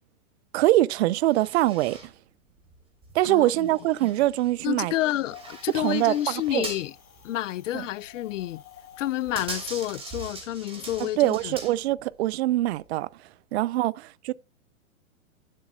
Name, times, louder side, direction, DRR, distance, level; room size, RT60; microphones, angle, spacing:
voice 1, 0.5-2.0 3.1-4.9 5.7-6.7 7.7-7.8 11.0-13.1 13.5-14.3, right 16 dB, 55° right, 0.5 m, -24 dB
sound 1, 1.2-2.1 2.6-6.9 7.2-7.3 8.1-8.5 8.9-12.1 12.6-12.9, right 3 dB, 15° right, 3.1 m, -42 dB
voice 2, 3.2-3.7 4.6-6.9 7.2-8.6 9.0-11.6, left 14 dB, 65° left, 0.5 m, -29 dB
Wind, 5.2-10.3, left 8 dB, 90° left, 1.8 m, -51 dB
11.0 x 7.5 x 2.3 m
hypercardioid pair, 125°, 41 cm